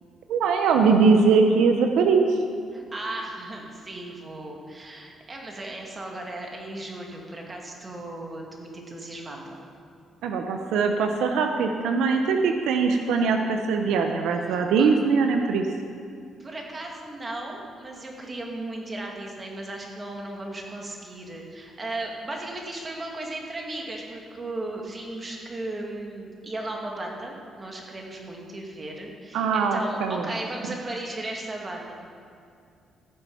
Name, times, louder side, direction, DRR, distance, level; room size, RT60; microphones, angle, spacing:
voice 1, 0.3-2.4 10.2-15.6 29.3-30.2, right 5 dB, 85° right, 4 dB, 0.7 m, -21 dB
voice 2, 2.7-9.6 14.5-14.9 16.4-31.9, right 2 dB, 25° right, 0 dB, 2.3 m, -36 dB
15.5 x 7.2 x 5.6 m, 2.4 s
cardioid pair, 90°, 0 cm